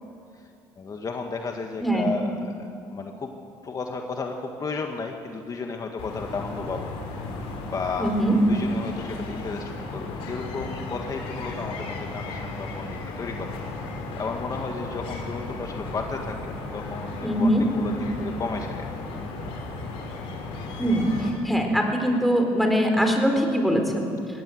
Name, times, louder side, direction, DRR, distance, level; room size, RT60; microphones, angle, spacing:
voice 1, 0.8-3.3 3.6-7.3 7.6-8.2 8.5-18.9 22.1-22.2, left 4 dB, 40° left, 3 dB, 1.6 m, -34 dB
voice 2, 1.8-2.1 8.0-8.3 17.2-17.6 20.8-21.1 21.4-24.0, equal, ahead, 3 dB, 4.2 m, -22 dB
sound 1, 6.0-21.3, left 3 dB, 80° left, 4.2 m, -35 dB
21.0 x 16.5 x 7.8 m, 2.5 s
supercardioid pair, 85°, 10 cm